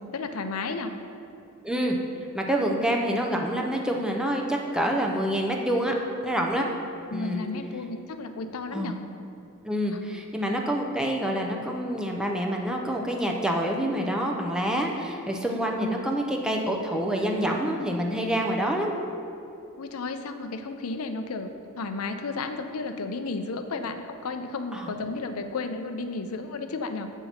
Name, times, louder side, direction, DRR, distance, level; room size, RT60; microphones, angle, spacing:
voice 1, 0.1-0.9 7.1-9.0 15.8-15.9 19.8-27.1, left 3 dB, 75° left, 7 dB, 0.5 m, -33 dB
voice 2, 1.6-2.0 2.3-6.0 6.2-6.7 7.1-7.4 8.7-8.9 9.6-18.9 24.7-24.9, right 1 dB, 5° right, 0 dB, 0.5 m, -27 dB
8.1 x 5.7 x 4.3 m, 2.7 s
head